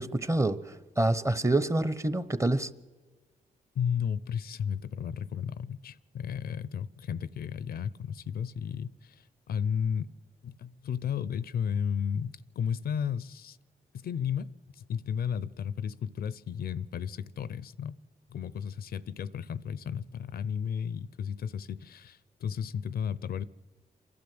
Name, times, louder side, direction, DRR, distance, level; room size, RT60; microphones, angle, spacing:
voice 1, 0.0-2.7, right 2 dB, 20° right, 0.9 m, -27 dB
voice 2, 3.7-10.1 10.4-13.6 13.9-17.9 18.3-23.4, left 7 dB, 75° left, 0.6 m, -33 dB
27.5 x 12.0 x 7.8 m
cardioid pair, 70°, 16 cm